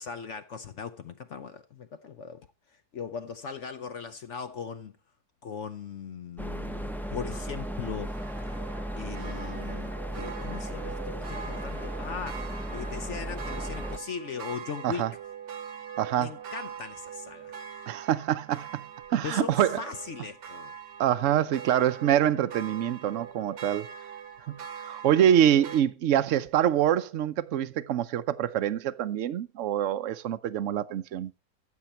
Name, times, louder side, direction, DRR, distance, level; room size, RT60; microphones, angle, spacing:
voice 1, 0.0-2.5 2.9-4.9 5.4-8.2 9.0-15.1 16.1-17.6 19.2-20.7, left 6 dB, 60° left, 0.8 m, -39 dB
sound 1, 6.4-14.0, equal, ahead, 0.5 m, -35 dB
sound 2, 7.3-25.8, right 8 dB, 85° right, 1.8 m, -43 dB
voice 2, 16.0-16.3 17.9-18.7 19.1-19.8 21.0-23.9 24.5-31.3, right 10 dB, 60° right, 0.9 m, -25 dB
14.5 x 7.2 x 4.3 m
omnidirectional pair, 1.8 m